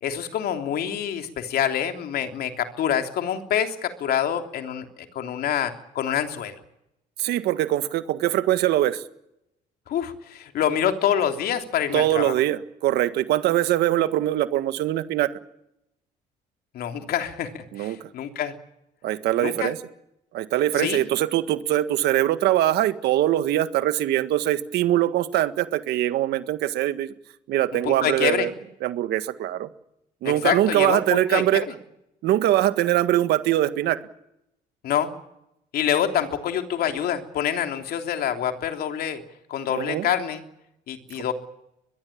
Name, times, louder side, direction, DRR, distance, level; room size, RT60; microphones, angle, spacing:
voice 1, 0.0-6.6 9.9-12.4 16.7-18.5 19.4-19.7 20.8-21.1 27.8-28.5 30.2-31.7 34.8-35.1 35.7-39.2 39.5-40.4 40.9-41.3, left 9 dB, 65° left, 6 dB, 3.3 m, -26 dB
voice 2, 7.2-9.0 11.9-15.3 17.7-18.1 19.0-19.8 20.3-27.1 27.5-28.5 28.8-29.7 30.2-31.6 32.2-34.0 39.7-40.1, right 13 dB, 75° right, 11 dB, 1.7 m, -22 dB
22.5 x 22.5 x 8.7 m, 0.82 s
cardioid pair, 110°, 17 cm